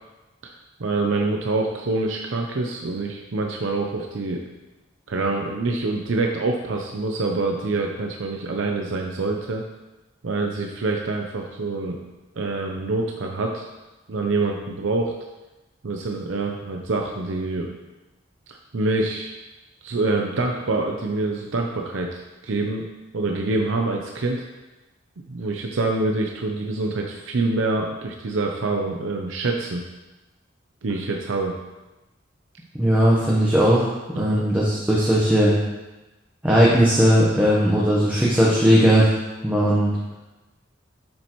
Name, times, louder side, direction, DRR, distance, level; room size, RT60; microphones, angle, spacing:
voice 1, 0.4-4.4 5.1-9.6 10.2-12.0 12.4-13.6 14.1-15.1 15.8-17.7 18.5-19.3 19.8-22.9 23.1-24.4 25.3-29.8 30.8-31.6 34.2-34.4, right 3 dB, 80° right, 1 dB, 0.6 m, -26 dB
voice 2, 32.8-33.9 34.2-35.5 36.4-39.1 39.4-39.9, equal, 10° right, -6 dB, 0.9 m, -18 dB
7.5 x 7.1 x 3.0 m, 1.1 s
head